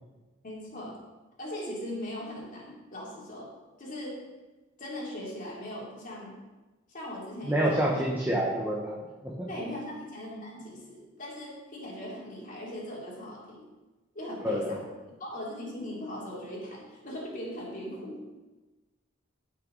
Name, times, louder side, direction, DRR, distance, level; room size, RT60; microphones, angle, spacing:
voice 1, 0.4-1.0 1.4-3.5 3.8-4.2 4.8-6.4 6.9-8.0 9.5-13.6 14.1-18.3, left 1 dB, 45° left, -4 dB, 3.0 m, -39 dB
voice 2, 7.5-9.0 9.2-9.5 14.4-14.7, right 1 dB, 10° right, -4 dB, 1.1 m, -27 dB
15.0 x 6.1 x 4.0 m, 1.2 s
head